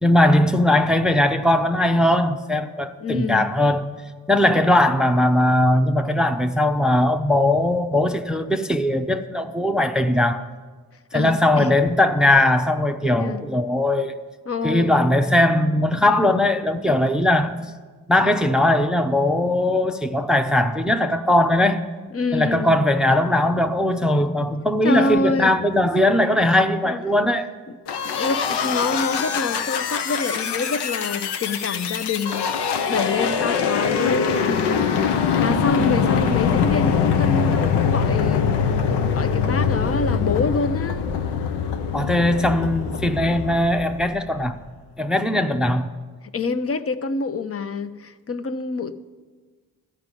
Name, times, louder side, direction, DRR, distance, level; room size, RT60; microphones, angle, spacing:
voice 1, 0.0-3.9 4.3-10.5 11.1-14.1 14.6-17.5 18.1-21.8 22.3-27.5 41.9-44.6 45.0-45.9, left 1 dB, ahead, 0.6 m, -19 dB
voice 2, 3.0-3.4 11.1-11.7 13.1-13.5 14.5-14.9 16.9-17.0 22.1-22.8 24.8-25.5 26.8-27.0 28.0-32.5 32.9-35.0 35.4-38.8 39.1-41.1 46.3-49.0, left 4 dB, 35° left, 0.7 m, -26 dB
Magic machine failure, 27.9-44.5, left 6 dB, 85° left, 0.7 m, -23 dB
12.5 x 5.3 x 9.0 m
supercardioid pair, 50°, 40 cm